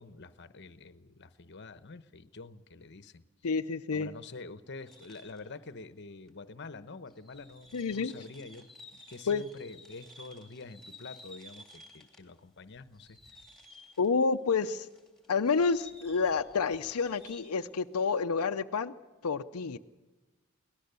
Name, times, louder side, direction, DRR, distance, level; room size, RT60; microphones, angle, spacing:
voice 1, 0.0-3.2 3.9-13.2, left 3 dB, 55° left, 12 dB, 1.0 m, -47 dB
voice 2, 3.4-4.1 7.7-8.1 9.3-9.4 14.0-14.9 15.3-18.9 19.2-19.8, left 5 dB, 85° left, 7 dB, 0.6 m, -29 dB
sound 1, 4.9-5.5 6.3-6.4 7.1-12.4 12.7-14.3 14.8-17.6, left 1 dB, ahead, 2.9 m, -54 dB
23.5 x 18.5 x 6.9 m, 1.2 s
head